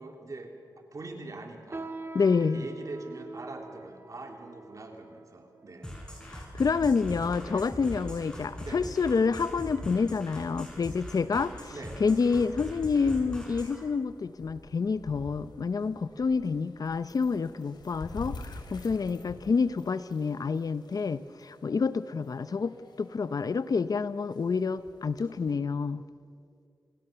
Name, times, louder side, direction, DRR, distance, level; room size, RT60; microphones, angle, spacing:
voice 1, 0.0-2.0 2.4-5.9 7.5-7.7 8.6-8.8 11.7-12.0, right 2 dB, 50° right, 3 dB, 3.4 m, -43 dB
sound 1, 1.7-7.4 8.1-8.2 8.9-9.2 9.6-9.8 10.5-10.6, right 3 dB, 35° right, 1.8 m, -46 dB
voice 2, 2.1-2.6 6.2-11.7 12.0-26.0, left 5 dB, 60° left, 15 dB, 0.7 m, -28 dB
sound 2, 5.8-13.8, equal, 10° left, 7.0 m, -41 dB
sound 3, 12.8-25.5, left 3 dB, 80° left, 3.1 m, -49 dB
28.5 x 18.5 x 6.9 m, 2.4 s
cardioid pair, 65°, 7 cm